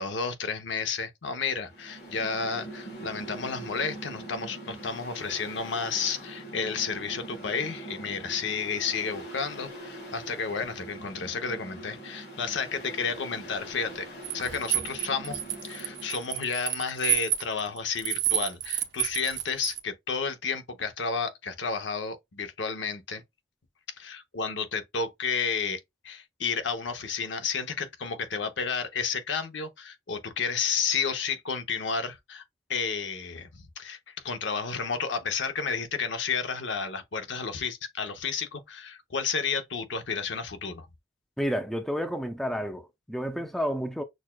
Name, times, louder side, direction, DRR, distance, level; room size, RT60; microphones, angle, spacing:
voice 1, 0.0-14.1 14.3-23.2 24.0-32.4 32.7-34.0 34.2-40.9, left 5 dB, 80° left, 0.7 m, -31 dB
Mechanical fan, 1.6-16.5, right 1 dB, 55° left, 1.8 m, -43 dB
sound 1, 14.2-19.8, right 12 dB, 70° right, 0.6 m, -29 dB
voice 2, 41.4-44.0, equal, ahead, 0.4 m, -30 dB
6.2 x 2.3 x 2.2 m
head